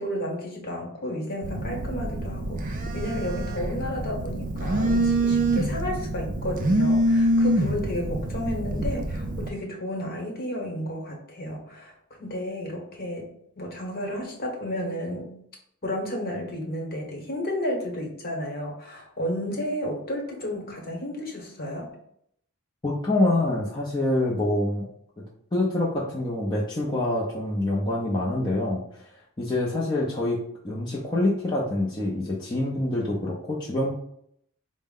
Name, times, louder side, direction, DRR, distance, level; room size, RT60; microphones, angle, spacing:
voice 1, 0.0-11.9 12.2-15.4 15.8-21.9, equal, 45° left, 0 dB, 1.1 m, -32 dB
Telephone, 1.4-9.5, right 1 dB, 35° right, 0.4 m, -25 dB
voice 2, 22.8-24.9 25.2-25.3 25.5-28.8 29.4-33.9, left 1 dB, 20° left, -5 dB, 0.5 m, -26 dB
4.5 x 2.1 x 3.6 m, 0.70 s
head